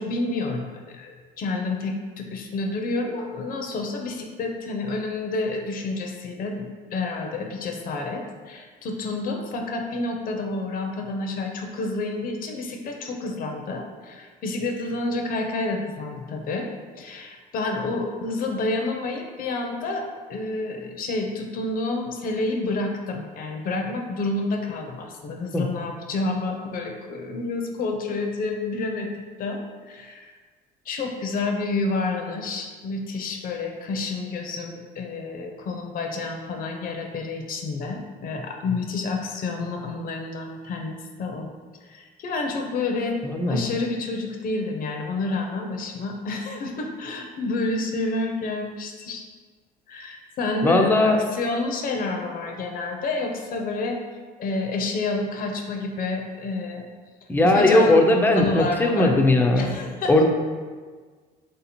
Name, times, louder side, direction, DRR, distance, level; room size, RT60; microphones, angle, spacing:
voice 1, 0.0-16.7 17.0-30.3 30.9-41.5 41.9-43.2 43.5-49.2 49.9-54.0 54.4-56.8 57.4-58.0 58.3-59.1 59.6-60.3, left 3 dB, 55° left, 3 dB, 0.6 m, -29 dB
voice 2, 43.2-43.6 50.6-51.2 57.3-59.8 60.1-60.3, left 2 dB, 10° left, 3 dB, 0.5 m, -18 dB
3.2 x 2.8 x 4.3 m, 1.5 s
cardioid pair, 110°, 17 cm